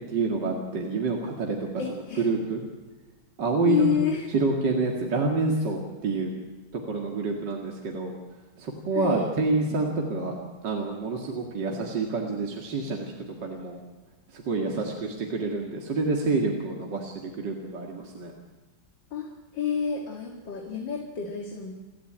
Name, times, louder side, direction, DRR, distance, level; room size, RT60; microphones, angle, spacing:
voice 1, 0.1-1.7 2.2-2.6 3.4-4.0 4.3-6.3 6.9-8.2 8.6-13.8 14.3-18.3, right 3 dB, 60° right, 1 dB, 2.8 m, -28 dB
voice 2, 1.8-2.3 3.6-4.3 8.9-9.3 19.1-21.7, left 7 dB, 65° left, 2 dB, 2.8 m, -29 dB
29.0 x 12.5 x 8.8 m, 1.2 s
omnidirectional pair, 2.2 m